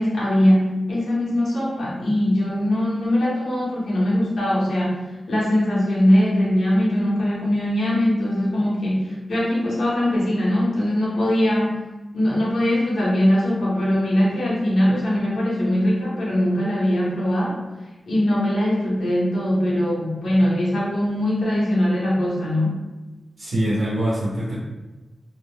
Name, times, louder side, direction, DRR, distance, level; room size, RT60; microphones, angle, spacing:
voice 1, 0.0-11.8 12.1-17.6 18.1-22.8, left 1 dB, 85° left, -7 dB, 1.0 m, -21 dB
voice 2, 23.4-24.5, right 1 dB, 65° right, -7 dB, 0.7 m, -23 dB
2.4 x 2.0 x 3.2 m, 1.1 s
wide cardioid pair, 130°, 0 cm